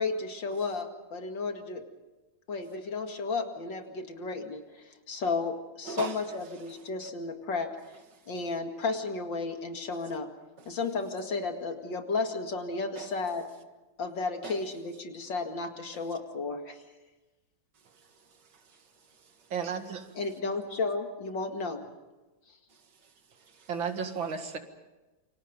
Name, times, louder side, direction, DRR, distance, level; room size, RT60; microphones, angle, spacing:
voice 1, 0.0-1.8 2.5-7.7 8.3-10.3 10.7-13.4 14.0-16.8 20.2-21.8, left 3 dB, 75° left, 2.9 m, -33 dB
voice 2, 5.8-7.1 7.9-8.3 10.6-10.8 13.0-13.1 14.4-14.6 15.9-16.0 17.7-19.5 22.7-23.7, right 5 dB, 65° right, 2.3 m, -46 dB
voice 3, 19.5-20.1 23.7-24.6, right 6 dB, 90° right, 2.7 m, -33 dB
28.5 x 25.5 x 5.2 m
omnidirectional pair, 2.1 m